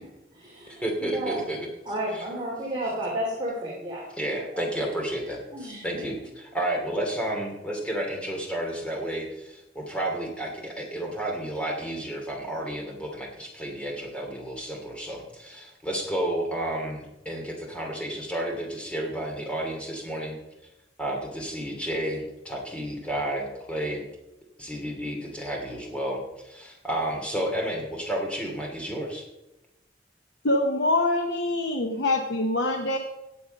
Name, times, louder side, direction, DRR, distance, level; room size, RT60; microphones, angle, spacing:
voice 1, 0.0-1.4 1.8-4.1 4.5-4.8 5.5-6.1, right 1 dB, 25° right, -5 dB, 2.9 m, -33 dB
voice 2, 0.8-1.7 2.1-2.2 4.2-20.4 21.0-24.0 24.6-29.2, right 1 dB, 5° left, 0 dB, 2.7 m, -31 dB
voice 3, 30.4-33.0, left 2 dB, 70° left, 3 dB, 1.1 m, -24 dB
17.5 x 6.9 x 5.3 m, 0.97 s
head